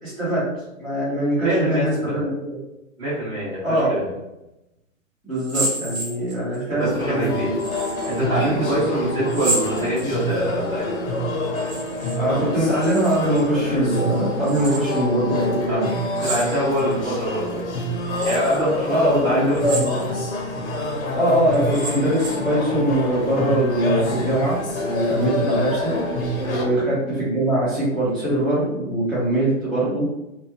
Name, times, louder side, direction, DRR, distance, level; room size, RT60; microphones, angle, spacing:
voice 1, 0.0-2.6 3.6-3.9 5.2-7.5 12.2-15.9 18.9-19.9 21.1-25.9 26.4-30.0, right 1 dB, 5° left, -22 dB, 0.5 m, -22 dB
voice 2, 1.4-2.1 3.0-4.1 6.8-7.5 8.1-10.8 15.7-15.9 16.2-17.7 18.2-19.6 26.4-26.6, equal, 15° right, -12 dB, 1.3 m, -24 dB
sound 1, 5.3-6.6 7.6-8.2 9.3-10.4 11.5-12.2 12.5-13.4 14.4-15.0 16.1-16.9 17.5-17.6 18.1-18.6 19.5-20.3 20.7-20.8 21.5-22.5, right 2 dB, 30° right, 0.9 m, -30 dB
sound 2, 6.8-26.6, left 1 dB, 80° left, 0.9 m, -27 dB
3.1 x 2.1 x 2.7 m, 0.92 s
hypercardioid pair, 170°, 41 cm